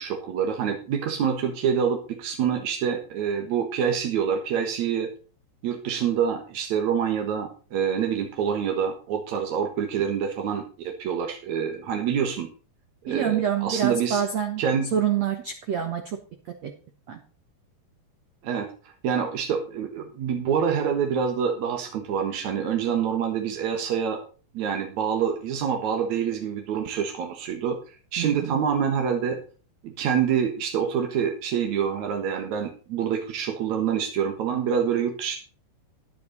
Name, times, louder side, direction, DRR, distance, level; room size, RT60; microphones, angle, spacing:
voice 1, 0.0-5.1 5.6-12.5 13.0-14.2 14.6-14.9 18.4-18.7 19.0-24.2 24.5-29.4 29.8-35.4, right 7 dB, 60° right, 3 dB, 2.0 m, -26 dB
voice 2, 13.1-14.6 14.9-16.2 16.6-16.7 17.1-17.2 28.2-28.6, right 8 dB, 80° right, 6 dB, 1.5 m, -26 dB
10.5 x 10.5 x 4.0 m, 0.37 s
omnidirectional pair, 5.1 m